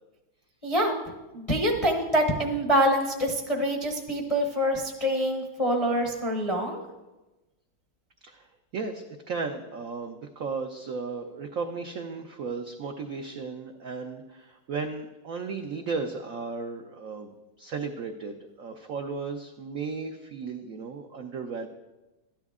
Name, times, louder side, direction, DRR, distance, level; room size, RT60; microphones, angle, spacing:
voice 1, 0.6-0.9 1.3-6.8, equal, 35° left, 1 dB, 0.6 m, -25 dB
voice 2, 8.7-17.3 17.6-21.7, right 4 dB, 75° right, 4 dB, 0.8 m, -35 dB
13.0 x 10.5 x 3.6 m, 1.1 s
omnidirectional pair, 2.3 m